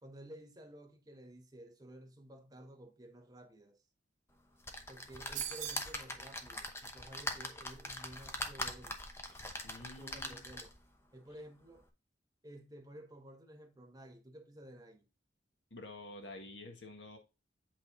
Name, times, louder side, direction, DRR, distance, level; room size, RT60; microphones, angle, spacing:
voice 1, 0.0-3.8 4.9-9.0 9.8-10.7 11.1-11.9 12.4-15.1, right 1 dB, 20° right, 1.1 m, -53 dB
sound 1, 4.6-10.9 11.4-11.5 11.8-11.9, left 1 dB, 15° left, 0.9 m, -42 dB
sound 2, 5.3-6.0, right 10 dB, 45° right, 1.1 m, -40 dB
voice 2, 9.6-10.5 15.7-17.2, left 2 dB, 80° left, 1.8 m, -49 dB
7.9 x 4.2 x 3.9 m
head